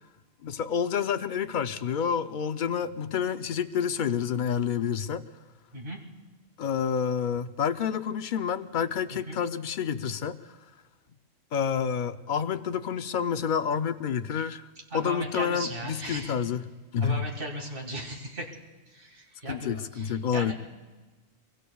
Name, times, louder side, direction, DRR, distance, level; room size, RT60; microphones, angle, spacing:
voice 1, 0.4-5.2 6.6-10.4 11.5-14.6 14.9-16.6 16.9-17.2 19.5-20.5, left 7 dB, 55° left, 10 dB, 0.6 m, -28 dB
voice 2, 14.9-16.3 17.0-18.5 18.9-20.5, right 1 dB, 45° right, 1 dB, 2.2 m, -37 dB
25.5 x 23.5 x 2.3 m, 1.2 s
omnidirectional pair, 1.3 m